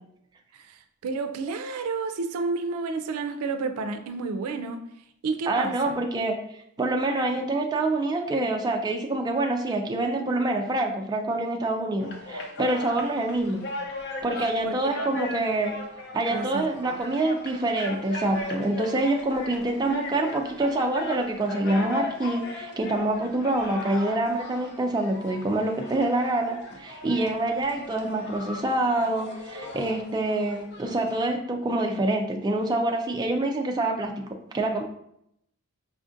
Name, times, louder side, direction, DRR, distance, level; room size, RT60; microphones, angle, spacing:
voice 1, 0.5-4.8 5.2-6.0 14.4-15.1 16.3-17.1, right 4 dB, 90° right, 8 dB, 0.4 m, -31 dB
voice 2, 5.5-6.4 6.8-13.7 14.2-15.8 16.1-34.1 34.5-34.8, right 2 dB, 20° right, 2 dB, 0.3 m, -26 dB
sound 1, 12.0-31.2, left 2 dB, 50° left, 0.5 m, -38 dB
4.9 x 2.4 x 2.6 m, 0.74 s
head